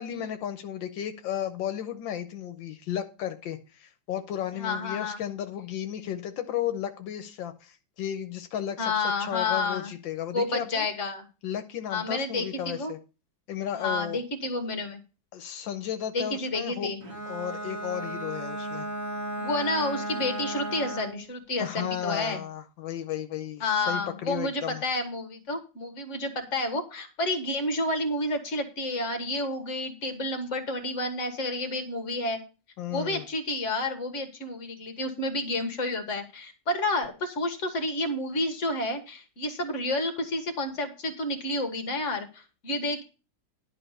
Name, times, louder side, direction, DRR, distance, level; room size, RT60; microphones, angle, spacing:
voice 1, 0.0-10.9 11.4-13.0 13.5-14.2 15.3-16.9 17.3-18.9 21.6-24.8 32.8-33.2, left 10 dB, 80° left, 8 dB, 1.5 m, -34 dB
voice 2, 4.5-5.2 8.8-9.9 10.3-11.2 11.9-12.9 13.8-15.0 16.1-17.0 19.4-22.4 23.6-32.4 32.9-43.0, left 2 dB, 40° left, 6 dB, 1.8 m, -30 dB
Bowed string instrument, 17.0-21.3, right 1 dB, 40° right, 2.4 m, -35 dB
11.0 x 4.8 x 6.6 m, 0.32 s
omnidirectional pair, 2.1 m